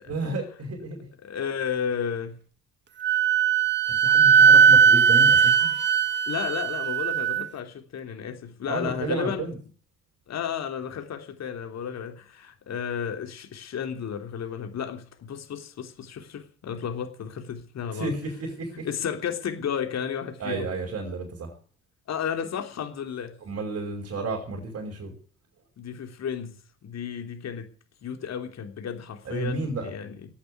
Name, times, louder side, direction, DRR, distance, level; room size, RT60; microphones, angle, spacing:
voice 1, 0.1-1.1 4.0-5.7 8.7-9.6 17.9-18.9 20.4-21.6 23.4-25.1 29.2-29.9, right 3 dB, 50° right, 5.8 m, -32 dB
voice 2, 1.2-2.4 6.3-9.5 10.3-18.1 18.8-20.7 22.1-23.3 25.8-26.5 26.8-27.7 28.0-30.1, left 8 dB, 55° left, 3.3 m, -33 dB
Wind instrument woodwind instrument, 3.0-7.5, right 6 dB, 35° right, 1.4 m, -18 dB
15.0 x 8.7 x 9.4 m
hypercardioid pair, 55°, 32 cm